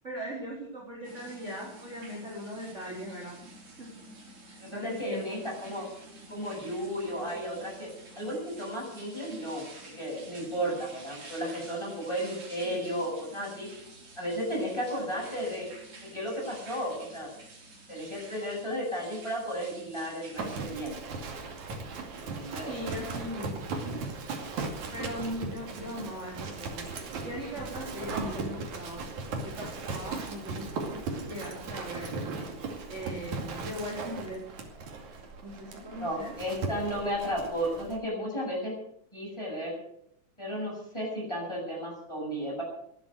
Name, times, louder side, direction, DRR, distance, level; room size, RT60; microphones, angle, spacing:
voice 1, 0.0-3.4 3.8-3.9 4.5-5.4 12.6-12.8 22.7-23.7 24.9-26.8 27.2-29.0 29.4-31.0 31.3-32.1 32.9-34.4 35.4-36.3, equal, 20° right, -4 dB, 4.0 m, -39 dB
sound 1, 1.0-20.6, right 2 dB, 45° right, 4.9 m, -50 dB
voice 2, 4.6-5.9 6.3-7.9 8.2-13.7 14.2-15.7 16.0-17.3 17.9-21.0 22.3-22.7 36.0-38.7 39.1-39.8 40.4-42.6, equal, 10° left, -2 dB, 7.7 m, -34 dB
Livestock farm animals working animals, 20.4-38.0, right 3 dB, 70° right, 3.8 m, -37 dB
18.0 x 11.5 x 6.5 m, 0.70 s
omnidirectional pair, 3.6 m